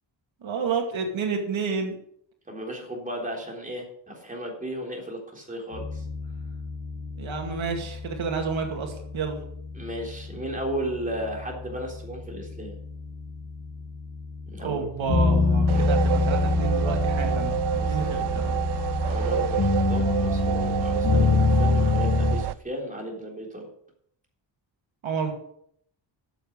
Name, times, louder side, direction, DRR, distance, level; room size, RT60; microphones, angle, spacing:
voice 1, 0.4-2.0 7.2-9.4 14.6-18.5 25.0-25.3, right 5 dB, 90° right, 3 dB, 2.4 m, -30 dB
voice 2, 2.5-6.0 9.7-12.8 14.5-14.9 15.7-15.9 17.8-18.5 19.0-23.7, right 1 dB, 15° right, 0 dB, 3.7 m, -35 dB
sound 1, 5.7-22.4, left 3 dB, 60° left, 4.3 m, -27 dB
sound 2, 15.7-22.5, right 12 dB, 60° right, 0.5 m, -28 dB
14.0 x 7.2 x 6.5 m, 0.68 s
wide cardioid pair, 135°, 46 cm